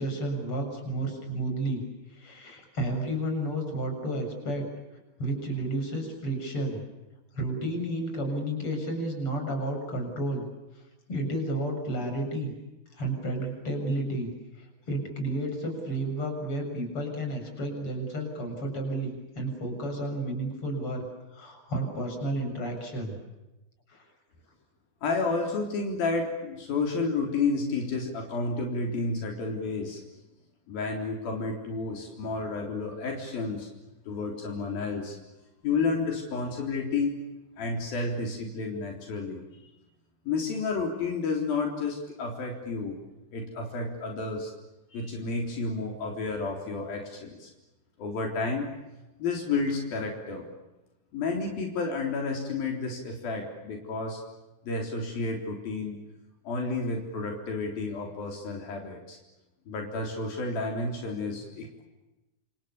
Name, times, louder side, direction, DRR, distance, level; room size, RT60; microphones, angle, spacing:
voice 1, 0.0-1.8 2.1-4.6 5.2-6.8 7.3-10.4 11.1-12.5 12.9-14.3 14.6-21.0 21.3-23.2 23.9-24.0, right 1 dB, 35° left, 3 dB, 8.1 m, -31 dB
voice 2, 25.0-30.0 30.7-33.7 34.1-35.2 35.6-37.1 37.6-39.4 40.3-43.0 43.3-44.5 44.9-47.5 48.0-48.7 49.2-50.5 51.1-54.2 54.6-56.0 56.5-59.2 59.7-61.8, left 3 dB, 80° left, 1 dB, 5.6 m, -31 dB
29.0 x 28.0 x 7.1 m, 1.0 s
omnidirectional pair, 4.1 m